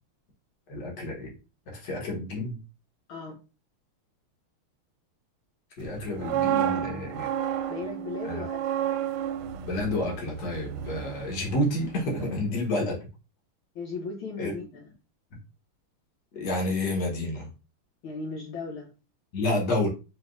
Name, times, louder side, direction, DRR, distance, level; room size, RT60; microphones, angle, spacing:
voice 1, 0.7-1.3 1.7-2.6 5.8-7.3 8.2-8.4 9.7-13.0 14.4-14.5 16.3-17.5 19.3-19.9, left 1 dB, 55° left, 1.8 m, -29 dB
voice 2, 3.1-3.4 7.7-8.8 12.7-12.8 13.8-14.9 18.0-18.9, left 4 dB, 70° left, 1.6 m, -37 dB
sound 1, 6.0-11.9 12.2-12.4, right 10 dB, 80° right, 1.4 m, -31 dB
4.9 x 3.1 x 2.6 m
omnidirectional pair, 2.4 m